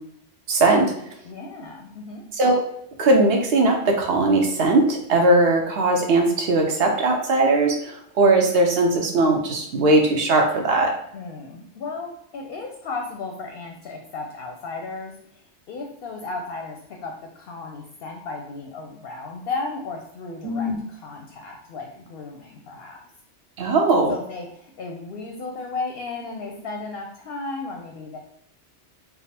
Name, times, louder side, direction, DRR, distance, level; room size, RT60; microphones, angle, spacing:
voice 1, 0.5-0.9 2.3-2.6 3.0-10.9 20.4-20.8 23.6-24.1, right 2 dB, 60° right, 1 dB, 0.9 m, -19 dB
voice 2, 1.2-2.2 11.1-23.0 24.1-28.2, left 3 dB, 65° left, 2 dB, 0.7 m, -34 dB
3.4 x 2.1 x 4.2 m, 0.69 s
omnidirectional pair, 1.2 m